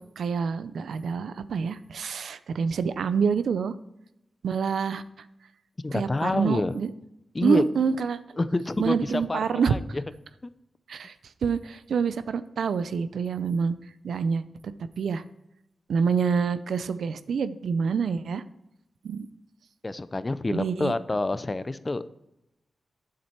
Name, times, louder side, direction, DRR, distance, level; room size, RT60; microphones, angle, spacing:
voice 1, 0.2-3.7 4.4-5.0 5.9-6.9 7.4-8.2 8.8-9.7 10.9-11.1 11.4-13.7 14.0-14.4 15.0-15.2 15.9-18.4 19.0-19.3 20.5-20.9, right 6 dB, 90° right, 13 dB, 0.5 m, -26 dB
voice 2, 5.8-6.7 7.3-7.6 8.4-10.0 19.8-22.1, left 2 dB, 30° left, 15 dB, 0.5 m, -28 dB
8.8 x 7.5 x 4.4 m, 0.87 s
cardioid pair, 70°, 0 cm